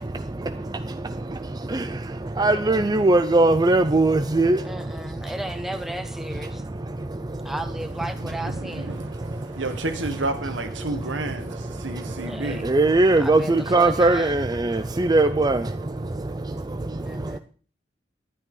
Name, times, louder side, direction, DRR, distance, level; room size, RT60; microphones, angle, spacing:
voice 1, 0.0-5.3 6.1-7.6 8.2-9.8 10.8-17.4, right 2 dB, 20° right, 0.5 m, -23 dB
voice 2, 2.4-3.1 4.6-6.6 7.4-9.1 12.2-12.7 13.2-14.3 17.0-17.4, right 1 dB, ahead, 1.0 m, -35 dB
voice 3, 8.2-12.7, right 2 dB, 90° right, 1.5 m, -31 dB
12.0 x 10.0 x 3.9 m
head